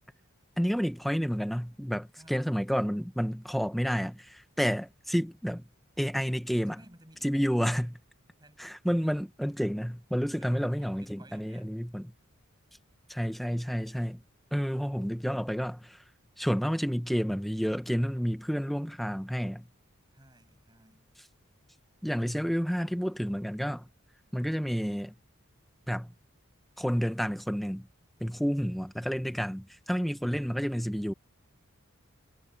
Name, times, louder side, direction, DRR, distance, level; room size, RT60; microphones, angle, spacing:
voice 1, 0.6-5.6 6.0-6.8 7.2-7.9 8.6-12.1 13.1-14.2 14.5-16.0 16.4-19.6 22.0-23.9 24.3-25.1 25.9-26.1 26.8-27.9 28.2-31.1, equal, ahead, 1.0 m, -30 dB
voice 2, 2.2-2.5 6.7-7.9 8.4-9.3 10.4-11.7 20.1-21.1, right 1 dB, 20° right, 6.6 m, -57 dB
head